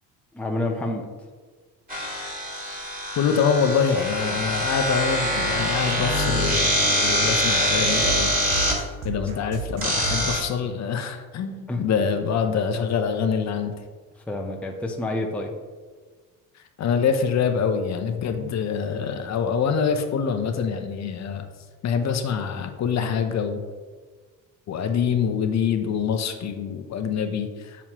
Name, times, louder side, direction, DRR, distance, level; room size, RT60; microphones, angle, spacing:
voice 1, 0.3-1.1 9.4-9.5 11.7-11.9 14.2-15.6, left 2 dB, 5° left, 1 dB, 0.6 m, -28 dB
sound 1, 1.9-8.8 9.8-10.4, equal, 25° right, 2.1 m, -24 dB
voice 2, 3.2-8.3 9.0-13.7 16.8-21.5 21.8-23.6 24.7-27.9, left 6 dB, 45° left, 6 dB, 0.7 m, -25 dB
sound 2, 7.8-10.3, right 5 dB, 75° right, 1.1 m, -33 dB
7.1 x 6.0 x 2.9 m, 1.4 s
cardioid pair, 115°, 37 cm